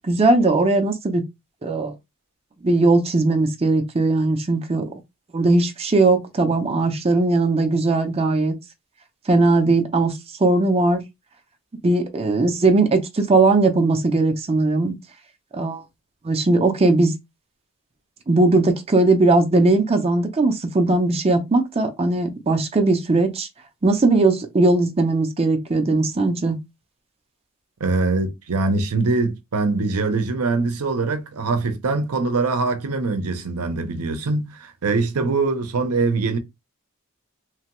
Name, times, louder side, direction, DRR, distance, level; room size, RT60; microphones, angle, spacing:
voice 1, 0.0-1.2 1.6-1.9 2.6-4.9 5.3-8.5 9.3-11.0 11.8-14.9 15.5-15.8 16.2-17.1 18.3-23.5 23.8-26.6, right 2 dB, 25° right, 0.5 m, -19 dB
voice 2, 27.8-36.4, right 3 dB, 80° right, 0.6 m, -23 dB
3.1 x 2.2 x 3.0 m
head